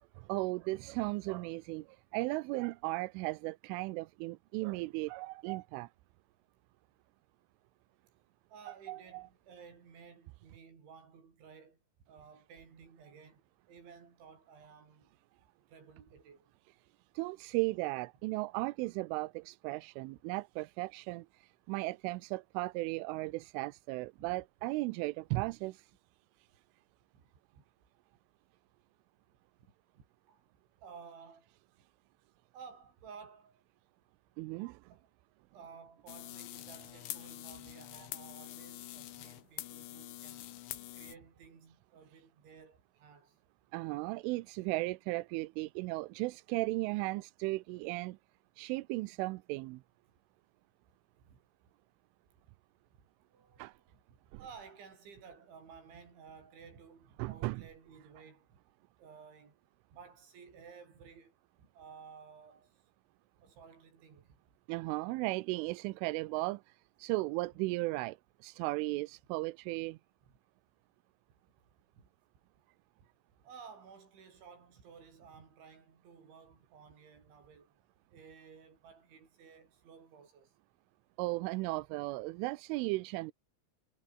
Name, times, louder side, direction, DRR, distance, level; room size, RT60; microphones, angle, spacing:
voice 1, 0.2-5.9 8.7-9.2 17.1-25.9 34.4-34.8 43.7-48.2 48.6-49.8 53.6-53.7 54.3-54.4 57.2-57.6 64.7-68.2 68.4-70.0 81.2-83.3, right 22 dB, 90° right, 3.2 m, -36 dB
voice 2, 8.5-13.4 13.7-15.1 15.7-16.5 24.2-24.4 27.1-27.2 27.5-27.6 29.6-30.5 30.8-31.5 32.5-33.6 34.9-35.1 35.5-43.4 51.2-51.4 53.0-58.6 59.0-59.6 59.9-62.8 63.4-64.4 72.0-72.1 73.4-77.8 78.1-80.5, right 6 dB, 70° right, 8.3 m, -55 dB
sound 1, 36.1-41.2, left 14 dB, 75° left, 3.9 m, -45 dB
omnidirectional pair, 5.5 m